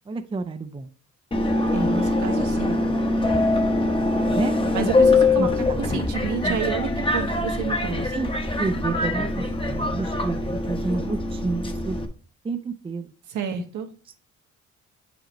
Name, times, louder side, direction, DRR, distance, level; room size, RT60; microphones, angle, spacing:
voice 1, 0.1-0.9 4.3-4.6 5.4-5.8 8.1-8.3 8.6-12.0 12.4-13.1, right 3 dB, 20° right, 8 dB, 0.5 m, -30 dB
Subway metro underground, 1.3-12.1, left 2 dB, 15° left, 1.0 m, -23 dB
voice 2, 1.7-2.8 4.7-5.5 5.8-8.1 13.3-13.9, right 6 dB, 75° right, 5 dB, 1.2 m, -29 dB
7.6 x 5.0 x 3.0 m, 0.38 s
cardioid pair, 90°, 30 cm